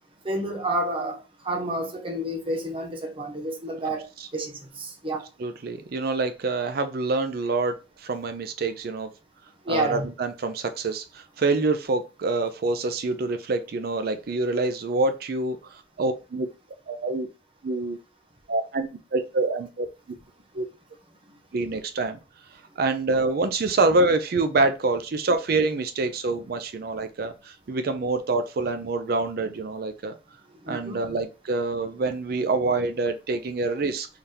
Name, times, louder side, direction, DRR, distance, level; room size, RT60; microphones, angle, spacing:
voice 1, 0.2-5.3 9.7-10.1 30.6-31.0, right 1 dB, 30° right, 0.8 m, -30 dB
voice 2, 5.4-9.1 9.7-16.5 16.9-17.3 17.6-18.0 18.5-19.9 20.5-20.7 21.5-22.2 22.8-30.1 30.7-34.1, right 3 dB, 60° right, 0.5 m, -26 dB
3.8 x 3.4 x 2.8 m
head